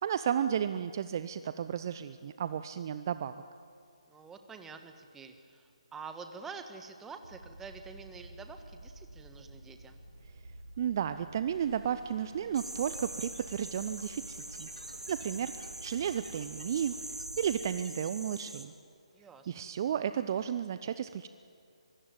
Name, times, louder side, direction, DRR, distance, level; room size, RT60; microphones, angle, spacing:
voice 1, 0.0-3.4 10.8-14.7 15.1-16.9 17.4-18.7 19.5-21.3, right 9 dB, 35° right, 12 dB, 0.7 m, -33 dB
voice 2, 4.1-10.0 19.1-19.7, right 5 dB, 10° right, 7 dB, 1.6 m, -47 dB
sound 1, 7.1-17.8, right 1 dB, 65° right, 4.8 m, -51 dB
sound 2, 11.5-17.3, left 1 dB, 85° left, 4.3 m, -58 dB
sound 3, 12.5-18.7, right 1 dB, 80° right, 3.3 m, -44 dB
24.5 x 23.5 x 9.1 m, 2.3 s
figure-of-eight pair, 145°, 3 cm